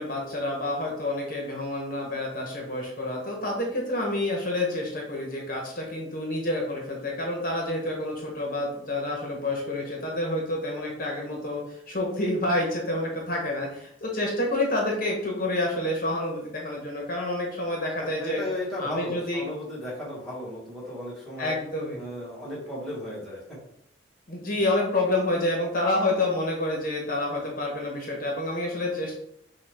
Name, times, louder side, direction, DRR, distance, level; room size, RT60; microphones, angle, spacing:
voice 1, 0.0-11.6 11.9-18.4 18.8-19.4 21.4-22.0 24.3-29.1, left 1 dB, 50° left, -1 dB, 1.0 m, -28 dB
voice 2, 18.2-21.5 21.9-23.4, left 1 dB, ahead, -8 dB, 1.6 m, -35 dB
6.1 x 2.5 x 3.5 m, 0.76 s
head